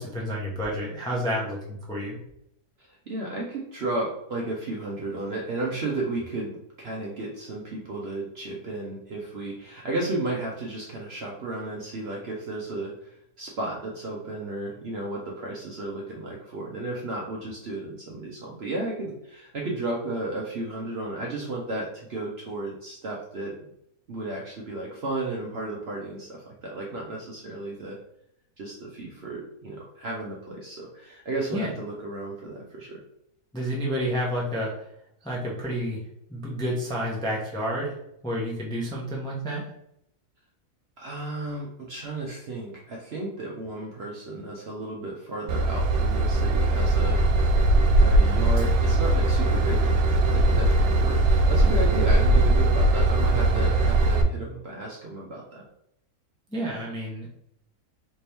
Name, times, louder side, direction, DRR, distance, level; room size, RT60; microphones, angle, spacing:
voice 1, 0.0-2.2 31.5-31.7 33.5-34.7 35.2-36.0 36.3-38.0 38.2-39.7 56.5-57.3, equal, 5° left, -4 dB, 0.4 m, -30 dB
voice 2, 2.8-23.5 24.1-28.0 28.6-33.0 41.0-47.2 48.0-55.6, right 2 dB, 55° right, -2 dB, 0.7 m, -33 dB
Train / Engine, 45.5-54.2, right 2 dB, 80° right, 1.1 m, -20 dB
3.4 x 2.8 x 3.3 m, 0.76 s
omnidirectional pair, 1.7 m